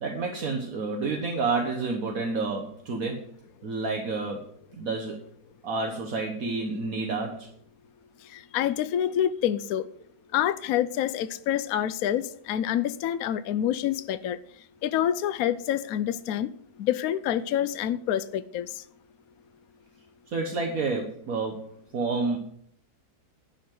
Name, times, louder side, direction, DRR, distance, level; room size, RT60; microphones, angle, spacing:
voice 1, 0.0-3.2 3.6-4.5 4.7-5.2 5.6-7.5 20.3-22.4, right 3 dB, 65° right, 1.7 m, -29 dB
voice 2, 8.3-9.8 10.3-14.4 14.8-16.5 16.8-18.8, left 10 dB, 75° left, 1.0 m, -27 dB
11.0 x 5.6 x 7.7 m
omnidirectional pair, 1.6 m